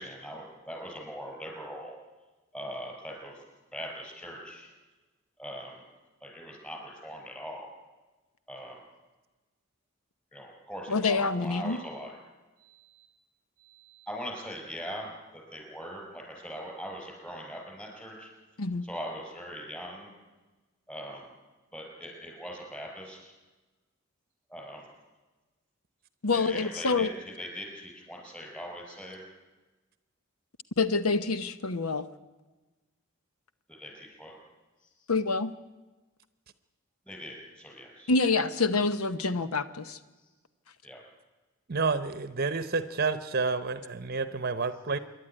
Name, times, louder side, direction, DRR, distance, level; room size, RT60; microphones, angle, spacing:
voice 1, 0.0-2.0 2.5-3.4 3.7-4.7 5.4-5.8 6.2-7.7 8.5-8.8 10.3-12.1 12.6-13.1 13.6-18.3 18.8-20.1 20.9-21.3 21.7-23.3 24.5-24.9 26.3-29.2 33.7-34.4 37.1-38.1 40.8-41.0, equal, 10° left, 1 dB, 5.5 m, -41 dB
voice 2, 10.9-11.8 18.6-18.9 26.2-27.1 30.8-32.1 35.1-35.5 38.1-40.0, left 3 dB, 90° left, 12 dB, 1.0 m, -27 dB
voice 3, 41.7-45.0, right 4 dB, 45° right, 13 dB, 0.8 m, -29 dB
27.0 x 11.5 x 10.0 m, 1.2 s
head